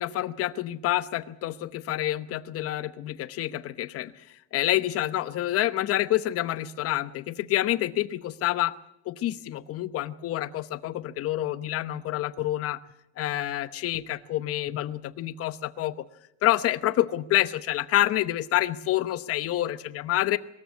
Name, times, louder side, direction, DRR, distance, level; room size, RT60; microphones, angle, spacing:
voice 1, 0.0-4.1 4.5-8.7 9.1-12.8 13.2-15.9 16.4-20.4, left 14 dB, 50° left, 14 dB, 1.0 m, -27 dB
22.0 x 14.0 x 9.6 m, 0.81 s
cardioid pair, 160°, 30 cm